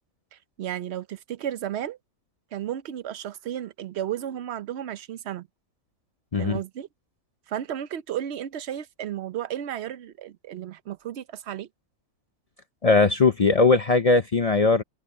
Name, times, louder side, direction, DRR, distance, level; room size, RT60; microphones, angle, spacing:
voice 1, 0.3-2.0 2.5-5.5 6.4-6.9 7.5-11.7, right 11 dB, 60° right, 0.9 m, -33 dB
voice 2, 12.8-14.8, left 3 dB, 45° left, 0.4 m, -19 dB
omnidirectional pair, 1.4 m